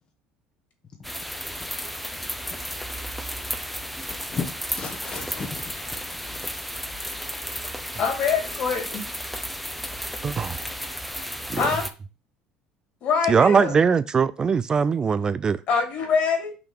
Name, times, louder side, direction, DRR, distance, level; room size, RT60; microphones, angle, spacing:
sound 1, 1.0-11.9, equal, ahead, 0.7 m, -33 dB
voice 1, 4.0-6.4, left 5 dB, 35° left, 1.0 m, -36 dB
voice 2, 8.0-9.0 11.5-11.9 13.0-13.8 15.7-16.5, left 5 dB, 55° left, 2.5 m, -24 dB
voice 3, 10.2-10.7 11.5-11.6 13.3-15.6, right 6 dB, 30° right, 0.3 m, -21 dB
5.8 x 3.3 x 5.8 m
supercardioid pair, 100°, 3 cm